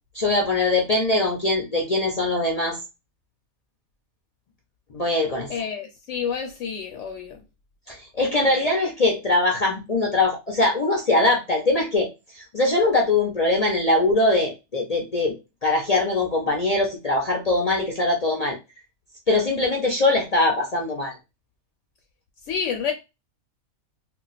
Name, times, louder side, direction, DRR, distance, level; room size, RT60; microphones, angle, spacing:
voice 1, 0.1-2.8 4.9-5.5 7.9-12.1 12.3-15.3 15.6-18.6 19.3-21.1, left 2 dB, 45° left, 0.5 m, -22 dB
voice 2, 5.5-7.4 8.5-8.7 22.4-22.9, left 7 dB, 70° left, 0.9 m, -29 dB
2.3 x 2.3 x 3.9 m
omnidirectional pair, 1.4 m